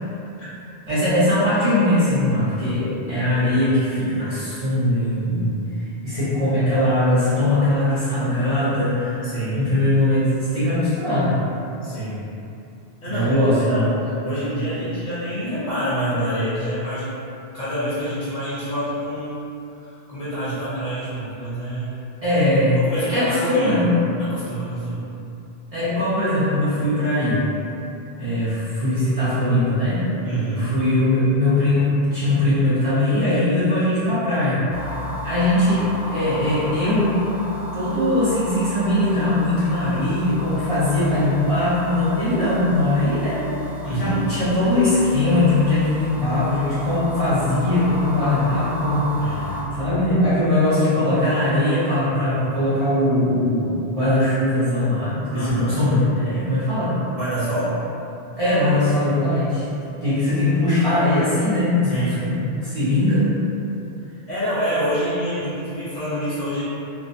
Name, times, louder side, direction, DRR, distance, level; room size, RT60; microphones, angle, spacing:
voice 1, 0.9-5.5 6.0-11.4 13.1-13.9 22.2-22.8 23.0-23.9 25.7-27.4 28.2-30.1 30.6-34.6 35.2-37.1 37.7-43.4 43.9-49.4 49.7-57.0 58.4-59.7 60.0-63.3, left 1 dB, 40° right, -13 dB, 0.6 m, -20 dB
voice 2, 9.2-9.7 11.8-12.2 13.0-13.9 14.2-17.1 17.5-19.4 19.8-22.0 22.8-23.9 24.2-25.1 30.2-30.7 43.8-44.2 49.2-49.5 55.3-55.8 57.2-57.8 61.8-62.3 64.1-66.6, right 1 dB, 50° left, -11 dB, 0.7 m, -27 dB
sound 1, 34.7-49.6, left 2 dB, 80° right, 0.8 m, -33 dB
2.5 x 2.0 x 2.5 m, 2.8 s
omnidirectional pair, 1.1 m